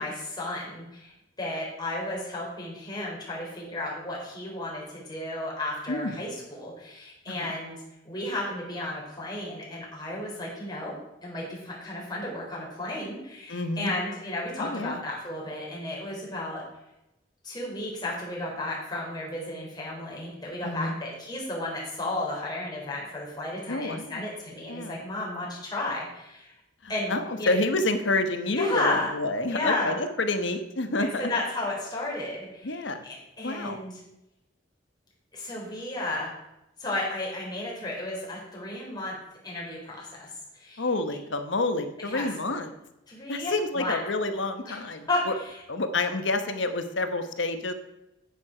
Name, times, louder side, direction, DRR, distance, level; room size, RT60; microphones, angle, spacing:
voice 1, 0.0-7.8 8.0-10.9 11.2-16.6 17.4-26.5 26.9-27.5 28.5-29.1 29.5-30.0 31.0-34.0 35.3-36.3 36.8-39.2 39.4-40.3 40.5-40.9 42.0-42.3 43.1-44.0 44.6-45.6, left 2 dB, 25° left, -4 dB, 3.7 m, -33 dB
voice 2, 13.5-13.9 14.6-15.0 20.6-21.0 23.7-24.2 24.7-24.9 26.8-31.3 32.6-33.0 33.4-33.8 40.8-42.7 43.3-45.3 45.7-47.7, left 2 dB, 90° left, 8 dB, 1.1 m, -28 dB
9.4 x 9.2 x 5.0 m, 0.90 s
head